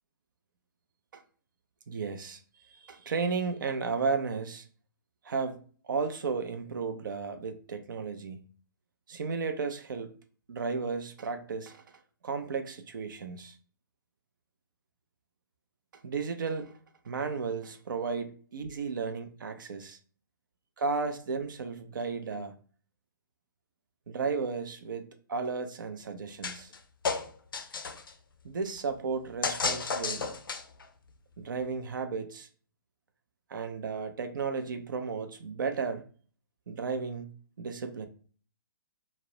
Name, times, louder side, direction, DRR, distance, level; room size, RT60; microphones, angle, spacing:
voice 1, 1.9-2.4 2.7-4.6 5.2-5.6 5.9-8.4 9.1-10.1 10.5-11.8 12.2-13.6 16.0-16.8 17.0-20.0 20.8-22.5 24.1-26.7 28.4-30.3 31.4-32.5 33.5-36.0 36.7-37.3 37.6-38.1, right 5 dB, 65° right, 0.4 m, -34 dB
sound 1, 26.4-26.8 27.0-28.1 29.4-30.8, left 5 dB, 80° left, 0.4 m, -32 dB
2.3 x 2.0 x 2.7 m
figure-of-eight pair, 135°, 11 cm